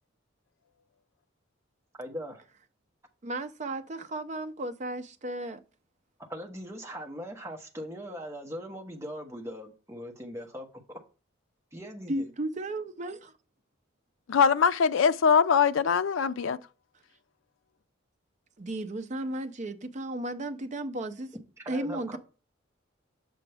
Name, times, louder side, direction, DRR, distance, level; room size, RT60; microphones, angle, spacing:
voice 1, 2.0-2.4 6.3-11.0 11.7-12.3 21.6-22.2, equal, 15° right, 1.1 m, -40 dB
voice 2, 3.2-5.6 12.1-13.3 18.6-21.3 21.7-22.2, right 1 dB, 35° right, 0.6 m, -34 dB
voice 3, 14.3-16.6, left 6 dB, 70° left, 0.4 m, -22 dB
6.9 x 5.0 x 3.4 m
head